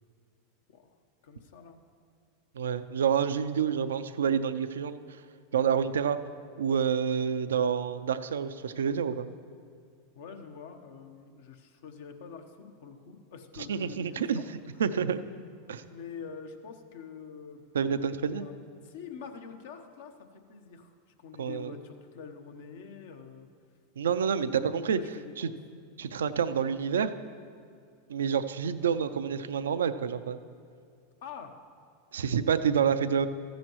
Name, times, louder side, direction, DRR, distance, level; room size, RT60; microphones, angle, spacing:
voice 1, 0.7-1.8 10.1-14.5 14.7-14.9 15.7-17.6 18.4-23.5 24.2-25.6 31.2-31.5, left 6 dB, 75° left, 6 dB, 0.9 m, -46 dB
voice 2, 2.6-5.0 5.5-6.2 6.6-9.3 13.7-14.4 14.8-15.2 15.7-15.8 17.7-18.4 21.4-21.7 24.0-25.0 25.4-25.5 26.0-27.1 28.1-30.4 32.1-33.3, right 7 dB, 90° right, 12 dB, 0.4 m, -28 dB
14.0 x 10.5 x 3.1 m, 2.3 s
hypercardioid pair, 110°, 0 cm